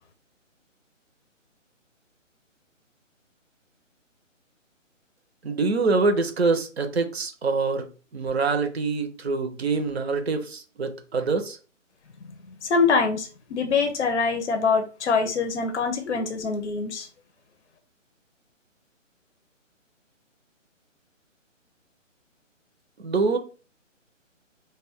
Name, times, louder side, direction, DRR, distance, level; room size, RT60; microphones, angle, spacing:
voice 1, 5.4-7.9 8.1-11.6 23.0-23.4, right 4 dB, 55° right, 0.6 m, -25 dB
voice 2, 12.6-17.1, left 5 dB, 60° left, 0.6 m, -24 dB
2.3 x 2.2 x 3.5 m
hypercardioid pair, 175°, 39 cm